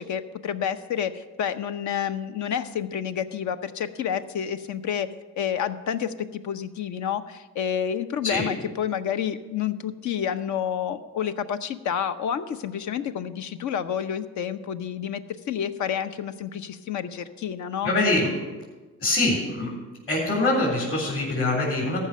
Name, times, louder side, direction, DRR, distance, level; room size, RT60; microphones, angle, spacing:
voice 1, 0.0-5.1 5.4-17.9, left 8 dB, 70° left, 10 dB, 0.7 m, -29 dB
voice 2, 17.8-18.3 19.0-19.7 20.1-22.0, left 2 dB, 50° left, -6 dB, 3.9 m, -24 dB
14.0 x 5.6 x 6.7 m, 1.2 s
cardioid pair, 90°, 30 cm